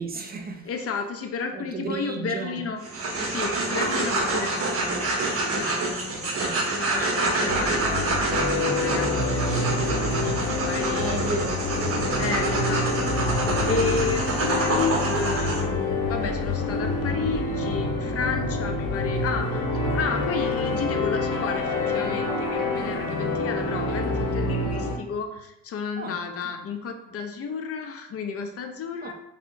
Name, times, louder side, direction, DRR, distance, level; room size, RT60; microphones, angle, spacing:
voice 1, 0.0-0.7 1.5-2.6 6.3-6.7 11.0-12.0 26.0-26.1 26.4-26.6 29.0-29.1, right 4 dB, 30° right, 5 dB, 0.4 m, -34 dB
voice 2, 0.6-2.8 3.2-11.2 12.2-29.1, left 5 dB, 50° left, 6 dB, 0.5 m, -32 dB
sound 1, 2.8-15.6, right 2 dB, 50° right, 0.9 m, -27 dB
sound 2, 7.5-25.0, left 2 dB, 85° left, 0.8 m, -27 dB
3.4 x 2.7 x 2.6 m, 0.80 s
cardioid pair, 90°, 30 cm